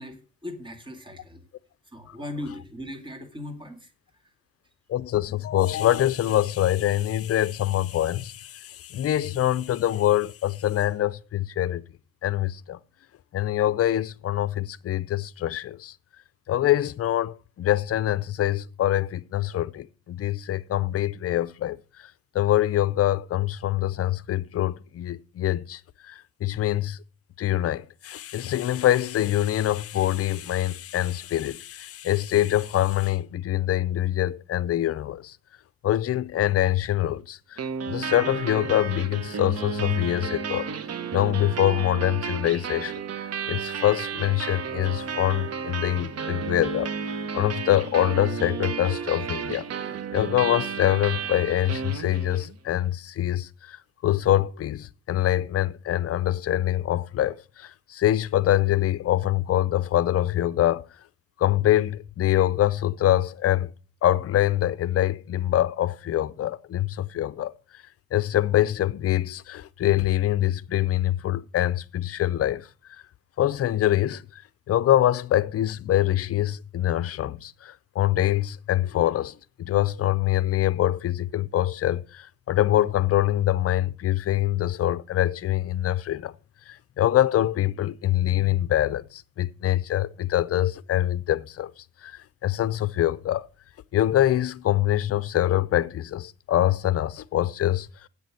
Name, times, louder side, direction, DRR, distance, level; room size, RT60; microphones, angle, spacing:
voice 1, 0.0-1.4 1.9-3.9, left 1 dB, 15° right, 2.1 m, -38 dB
voice 2, 4.9-11.8 12.2-12.8 13.3-15.9 16.5-21.8 22.3-25.8 26.1-27.0 27.4-35.4 35.8-37.6 37.9-40.7 41.1-46.9 47.3-49.7 50.1-53.8 54.0-60.8 61.4-63.7 64.0-67.5 68.1-72.7 73.4-74.4 74.7-86.3 86.7-91.7 92.0-93.4 93.9-97.9, left 13 dB, 50° left, 0.6 m, -24 dB
sound 1, 37.6-52.6, right 6 dB, 55° right, 1.1 m, -32 dB
8.4 x 6.8 x 6.3 m
cardioid pair, 90°, 30 cm